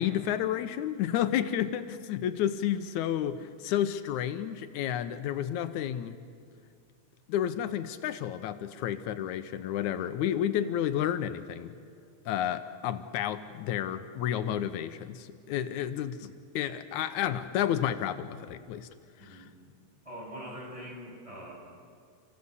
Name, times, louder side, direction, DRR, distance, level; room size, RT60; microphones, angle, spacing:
voice 1, 0.0-6.2 7.3-11.7 12.3-18.9 19.2-19.5, left 10 dB, 85° left, 10 dB, 2.2 m, -31 dB
voice 2, 19.2-19.6 20.0-21.5, equal, 10° right, -4 dB, 8.1 m, -43 dB
30.0 x 16.0 x 8.1 m, 2.3 s
omnidirectional pair, 3.3 m